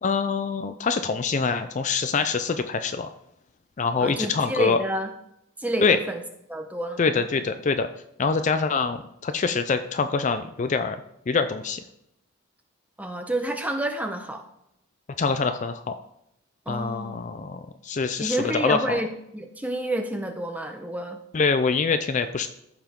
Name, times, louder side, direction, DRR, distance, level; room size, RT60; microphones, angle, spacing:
voice 1, 0.0-3.1 3.8-4.8 5.8-6.0 7.0-7.9 8.2-11.0 11.3-11.8 15.2-15.9 16.7-19.0 21.3-22.5, left 4 dB, 35° left, 9 dB, 0.4 m, -25 dB
voice 2, 4.0-5.1 5.6-6.2 6.5-7.2 13.0-14.4 16.7-17.2 18.2-21.2, right 1 dB, 5° right, 5 dB, 0.8 m, -29 dB
14.0 x 5.7 x 3.7 m, 0.78 s
head